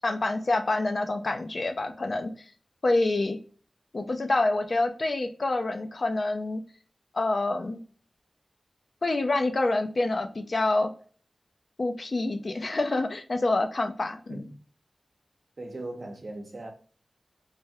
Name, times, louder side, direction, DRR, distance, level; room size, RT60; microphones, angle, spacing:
voice 1, 0.0-2.3 2.8-3.4 3.9-6.6 7.1-7.8 9.0-10.9 11.8-14.4, left 2 dB, 60° left, 0.5 m, -27 dB
voice 2, 15.6-16.7, right 2 dB, 65° right, 0.7 m, -39 dB
3.4 x 2.2 x 2.7 m
cardioid pair, 40°, 0 cm